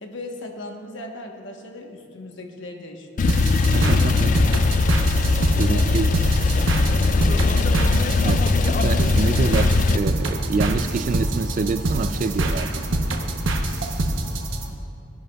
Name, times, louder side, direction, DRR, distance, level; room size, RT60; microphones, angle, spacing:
voice 1, 0.0-4.5 5.5-6.0 6.5-6.8, left 1 dB, 70° left, 2 dB, 1.1 m, -38 dB
Male speech man speaking / Car / Idling, 3.2-10.0, left 3 dB, 40° left, 0.3 m, -20 dB
sound 1, 3.3-14.6, right 1 dB, 85° right, 0.9 m, -25 dB
voice 2, 3.7-4.3 5.6-6.1 8.2-12.9 14.7-14.8, right 4 dB, 40° right, 12 dB, 0.4 m, -26 dB
16.5 x 10.5 x 2.3 m, 2.6 s
head